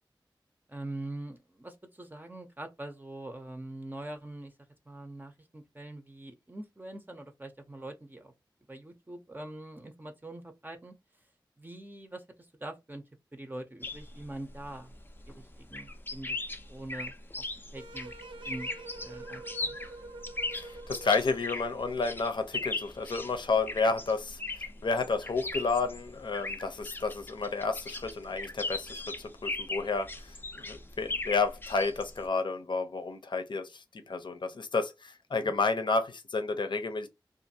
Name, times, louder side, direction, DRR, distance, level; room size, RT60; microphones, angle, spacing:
voice 1, 0.7-4.5 4.9-8.3 8.7-10.9 11.6-13.0 13.3-14.9 15.3-16.4 16.7-17.4 17.7-18.2 18.5-18.7 19.0-19.8 35.4-35.5, right 1 dB, 20° right, 0.6 m, -43 dB
sound 1, 13.8-32.3, left 2 dB, 25° left, 0.4 m, -39 dB
sound 2, 17.7-22.1, right 2 dB, 75° right, 0.5 m, -46 dB
voice 2, 20.5-37.1, left 4 dB, 65° left, 0.6 m, -31 dB
2.5 x 2.5 x 2.7 m
cardioid pair, 40°, 9 cm